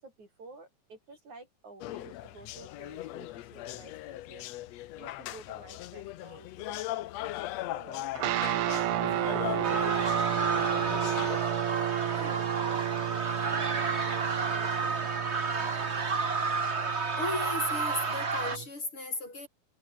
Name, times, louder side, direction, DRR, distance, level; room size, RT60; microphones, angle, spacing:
voice 1, 0.0-7.1 7.6-10.0 12.1-15.1 15.5-16.8, right 3 dB, 65° right, 9.4 m, -51 dB
sound 1, 1.8-11.4, left 15 dB, 70° left, 1.7 m, -39 dB
sound 2, 8.1-18.7, right 13 dB, 80° right, 1.2 m, -32 dB
sound 3, 9.6-18.6, right 4 dB, 25° right, 1.8 m, -31 dB
voice 2, 17.1-19.5, left 2 dB, 40° left, 6.6 m, -35 dB
omnidirectional pair, 3.7 m